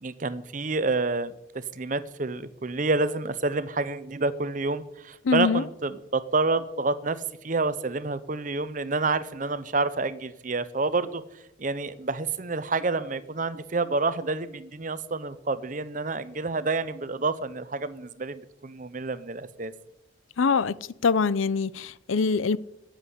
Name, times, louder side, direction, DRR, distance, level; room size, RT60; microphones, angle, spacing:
voice 1, 0.0-11.2 11.6-19.7, right 3 dB, 40° right, 15 dB, 0.7 m, -28 dB
voice 2, 5.2-5.6 20.4-20.7 21.0-22.6, left 5 dB, 85° left, 19 dB, 0.6 m, -23 dB
13.5 x 7.6 x 10.0 m, 0.88 s
head